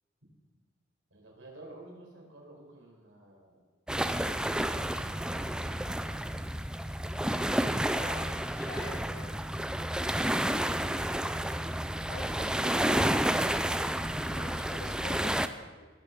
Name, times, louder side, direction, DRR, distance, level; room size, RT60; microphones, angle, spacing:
voice 1, 1.1-3.7 4.0-5.9, right 2 dB, 85° right, -1 dB, 4.8 m, -52 dB
sound 1, 3.9-15.5, right 1 dB, 5° right, 0.5 m, -30 dB
voice 2, 7.8-9.4 12.1-13.1 14.2-15.9, left 2 dB, 50° left, 2 dB, 2.4 m, -46 dB
20.0 x 6.8 x 7.1 m, 1.4 s
head